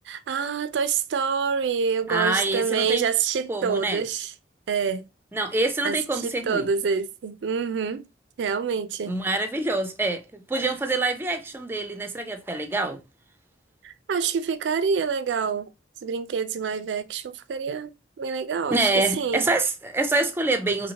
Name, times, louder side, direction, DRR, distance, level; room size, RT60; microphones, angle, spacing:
voice 1, 0.1-4.3 4.7-5.0 5.8-8.1 8.4-9.2 13.8-15.7 16.0-17.9 18.2-19.5, right 6 dB, 90° right, 0.4 m, -27 dB
voice 2, 2.1-3.1 3.5-4.0 5.3-6.7 9.1-13.0 18.7-20.9, right 2 dB, 15° right, 0.4 m, -26 dB
2.8 x 2.7 x 2.8 m
head